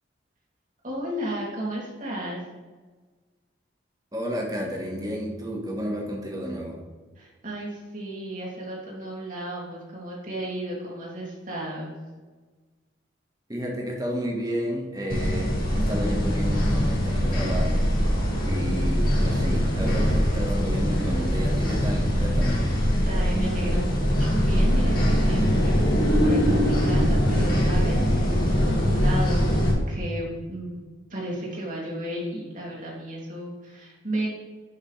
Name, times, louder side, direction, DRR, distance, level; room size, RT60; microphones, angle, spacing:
voice 1, 0.8-2.4 7.2-12.0 23.0-25.7 26.2-30.8 31.1-34.3, right 1 dB, 40° right, -4 dB, 2.9 m, -34 dB
voice 2, 4.1-6.8 13.5-17.8 18.4-22.6, equal, 20° right, -1 dB, 1.7 m, -31 dB
sound 1, 15.1-29.7, equal, 45° left, 2.4 m, -22 dB
10.5 x 6.4 x 3.3 m, 1.3 s
head